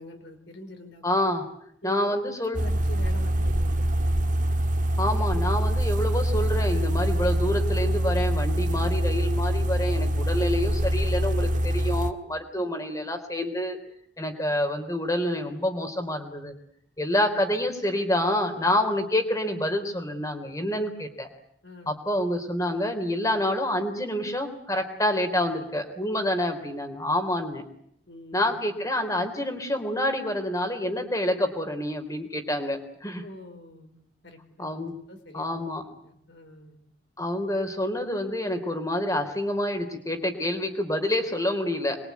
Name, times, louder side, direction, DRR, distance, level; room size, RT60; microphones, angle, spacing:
voice 1, 0.0-1.3 1.8-4.2 12.5-12.6 17.1-17.3 21.6-22.1 28.1-28.6 33.2-34.0 34.2-35.6 35.9-36.8, left 1 dB, 65° left, 5 dB, 4.4 m, -45 dB
voice 2, 1.0-1.4 1.8-2.6 5.0-13.8 14.2-16.5 17.0-21.3 21.8-27.6 28.3-33.2 34.6-34.9 35.3-35.8 37.2-42.0, left 1 dB, 15° left, 6 dB, 3.4 m, -27 dB
sound 1, 2.5-12.1, right 1 dB, 40° right, 1.5 m, -24 dB
25.5 x 22.0 x 9.4 m, 0.69 s
head